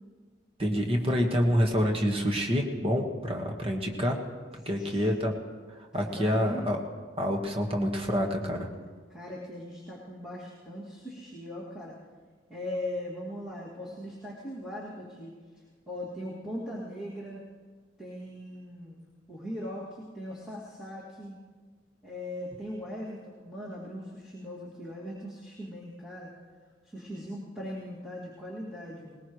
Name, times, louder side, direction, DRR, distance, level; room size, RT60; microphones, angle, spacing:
voice 1, 0.6-4.2 4.6-5.3 5.9-6.8 7.2-8.7, equal, 30° right, 1 dB, 1.5 m, -27 dB
voice 2, 4.7-5.1 5.9-6.7 9.1-12.0 12.5-15.3 15.9-17.4 18.0-19.0 19.3-21.4 22.0-26.3 26.8-29.2, left 1 dB, 5° right, -7 dB, 2.3 m, -39 dB
21.0 x 20.0 x 3.2 m, 1.5 s
head